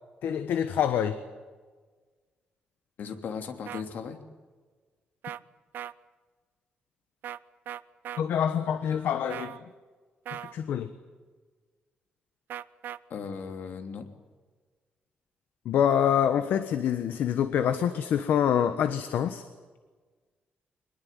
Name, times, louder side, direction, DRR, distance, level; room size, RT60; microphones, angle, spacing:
voice 1, 0.2-1.2 8.2-9.6 10.5-10.9 15.6-19.4, left 9 dB, 80° left, 10 dB, 1.4 m, -26 dB
voice 2, 3.0-4.2 13.1-14.1, left 6 dB, 65° left, 6 dB, 3.0 m, -37 dB
sound 1, 3.7-3.8 5.2-5.4 5.7-5.9 7.2-7.4 7.7-8.2 9.3-9.6 10.3-10.5 12.5-13.0, right 11 dB, 75° right, 0.7 m, -38 dB
23.5 x 20.5 x 9.3 m, 1.4 s
wide cardioid pair, 155°, 3 cm